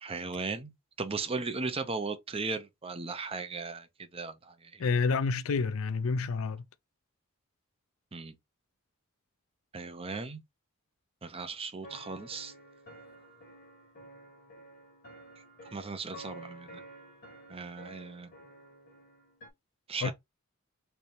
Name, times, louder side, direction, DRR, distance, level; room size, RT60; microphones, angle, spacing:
voice 1, 0.0-0.7 1.0-4.9 8.1-8.4 9.7-10.4 11.2-12.5 15.7-16.8 17.5-18.3 19.9-20.1, right 4 dB, 25° right, 0.7 m, -37 dB
voice 2, 4.8-6.6 20.0-20.1, left 4 dB, 70° left, 0.4 m, -29 dB
sound 1, 11.8-19.5, right 1 dB, 45° left, 1.1 m, -51 dB
3.3 x 2.7 x 4.2 m
head